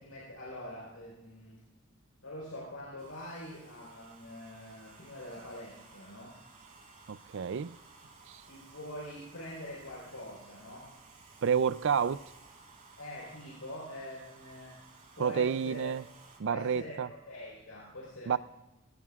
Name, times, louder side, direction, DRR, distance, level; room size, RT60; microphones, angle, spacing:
voice 1, 0.0-1.6 2.2-6.4 8.5-10.9 13.0-14.8 15.2-15.9 16.4-18.4, equal, 85° left, 4.3 m, -44 dB
Domestic sounds home sounds, 3.0-16.4, right 4 dB, 40° right, 4.5 m, -57 dB
voice 2, 7.1-7.7 8.3-8.4 11.4-12.2 15.2-16.0 16.4-17.1 18.3-18.4, right 7 dB, 60° right, 0.4 m, -29 dB
21.0 x 18.5 x 2.4 m
head